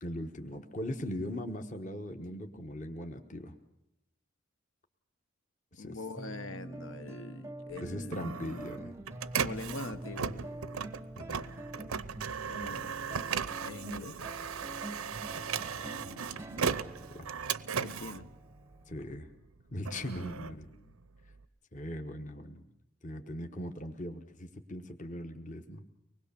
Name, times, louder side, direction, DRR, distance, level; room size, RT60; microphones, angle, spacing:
voice 1, 0.0-3.5 5.7-6.0 7.8-9.0 11.1-11.4 16.6-16.8 17.1-17.3 18.9-19.3 19.7-20.7 21.7-22.6 23.0-25.8, equal, 35° left, 6 dB, 1.2 m, -40 dB
voice 2, 5.8-8.2 9.3-10.4 12.5-13.2 13.6-14.2 17.8-18.3 20.4-21.0, left 2 dB, 70° left, 10 dB, 1.2 m, -43 dB
sound 1, 6.2-18.9, right 1 dB, 15° right, 0.7 m, -46 dB
Printer, 7.7-19.1 19.6-21.4, right 6 dB, 90° right, 0.8 m, -37 dB
24.5 x 20.5 x 7.0 m, 0.84 s
head